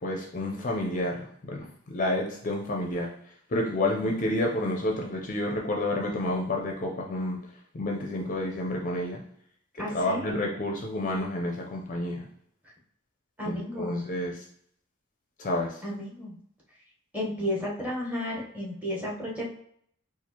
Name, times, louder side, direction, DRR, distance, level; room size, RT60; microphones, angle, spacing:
voice 1, 0.0-3.1 3.5-7.4 7.7-9.2 9.7-12.2 13.4-14.4 15.4-15.8, left 1 dB, 35° left, 0 dB, 0.5 m, -30 dB
voice 2, 3.8-4.1 9.8-10.4 13.4-14.0 15.8-16.3 17.1-19.5, left 1 dB, 5° right, -4 dB, 0.9 m, -33 dB
4.3 x 2.4 x 2.8 m, 0.67 s
head